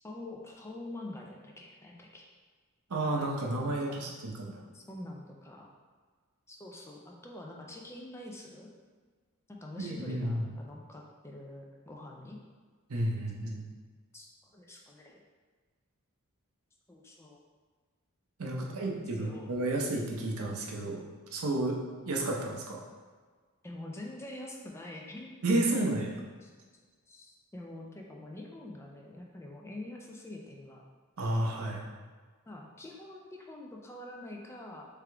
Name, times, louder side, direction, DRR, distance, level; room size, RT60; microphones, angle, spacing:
voice 1, 0.0-2.3 3.6-4.0 4.7-5.7 6.5-8.7 9.5-12.4 14.1-15.2 16.9-17.4 18.6-19.5 23.6-25.4 25.7-25.9 26.4-26.5 27.1-30.8 32.5-34.9, left 1 dB, 10° left, -1 dB, 0.4 m, -46 dB
voice 2, 2.9-4.6 9.8-10.5 12.9-13.7 18.4-21.0 21.3-21.8 22.0-22.8 25.4-26.1 31.2-31.9, right 1 dB, 80° right, 0 dB, 0.7 m, -31 dB
3.5 x 3.5 x 3.3 m, 1.5 s
head